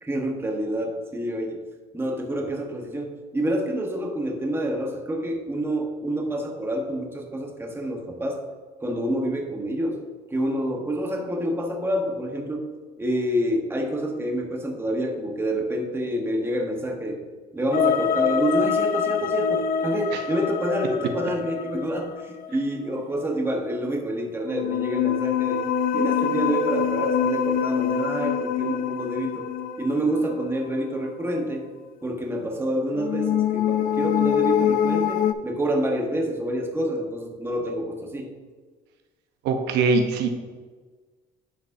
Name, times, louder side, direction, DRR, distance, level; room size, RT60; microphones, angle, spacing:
voice 1, 0.0-1.6 1.9-8.4 8.8-10.0 10.3-12.7 13.0-17.2 17.5-25.6 25.9-29.5 29.8-31.7 32.0-38.3, right 1 dB, 15° right, 1 dB, 1.2 m, -27 dB
sound 1, 17.7-22.5 24.5-30.8 33.0-35.3, left 8 dB, 60° left, 0.5 m, -25 dB
voice 2, 39.4-40.3, right 4 dB, 85° right, 5 dB, 0.8 m, -22 dB
9.7 x 5.2 x 2.7 m, 1.4 s
cardioid pair, 110°, 17 cm